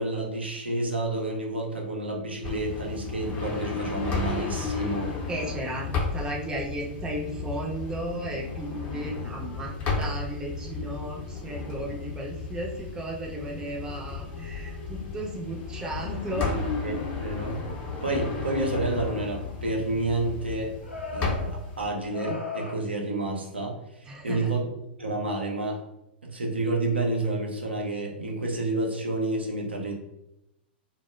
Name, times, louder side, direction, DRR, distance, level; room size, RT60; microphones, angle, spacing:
voice 1, 0.0-5.1 16.8-16.9 17.2-17.6 18.0-20.7 21.1-24.6 25.0-25.8 26.2-29.9, right 2 dB, 80° right, 0 dB, 0.6 m, -29 dB
sound 1, 2.4-21.9, left 4 dB, 35° left, 0.7 m, -33 dB
voice 2, 5.3-16.6 24.1-24.5, right 1 dB, 10° right, -2 dB, 0.6 m, -35 dB
sound 2, 7.5-7.7 9.1-11.6 11.9-12.0 13.7-13.8 14.3-16.9 17.4-18.5 20.8-22.7, left 3 dB, 90° left, 0.5 m, -42 dB
2.1 x 2.1 x 3.1 m, 0.83 s
figure-of-eight pair, 100°, 6 cm